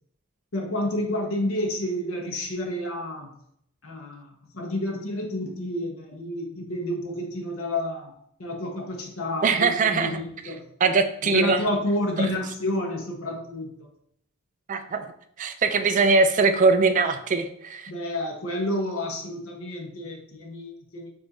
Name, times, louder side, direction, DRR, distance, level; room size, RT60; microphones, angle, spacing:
voice 1, 0.5-3.4 3.8-8.1 8.4-10.6 11.3-13.9 17.9-21.1, left 1 dB, 70° left, 1 dB, 1.0 m, -30 dB
voice 2, 9.4-10.2 10.8-11.6 12.2-12.3 14.7-15.1 15.4-17.9, right 4 dB, 35° right, 8 dB, 0.4 m, -21 dB
6.1 x 2.6 x 3.0 m, 0.71 s
head